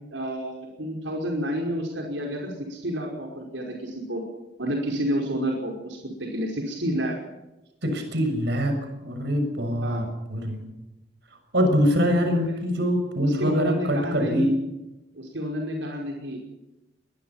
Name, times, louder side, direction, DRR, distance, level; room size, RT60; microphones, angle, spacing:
voice 1, 0.1-4.2 4.6-7.2 9.8-10.1 13.2-14.6 15.1-16.4, equal, 85° right, 1 dB, 5.3 m, -30 dB
voice 2, 7.8-10.7 11.5-14.5, equal, 65° right, 6 dB, 6.6 m, -24 dB
22.5 x 22.0 x 5.9 m, 0.97 s
head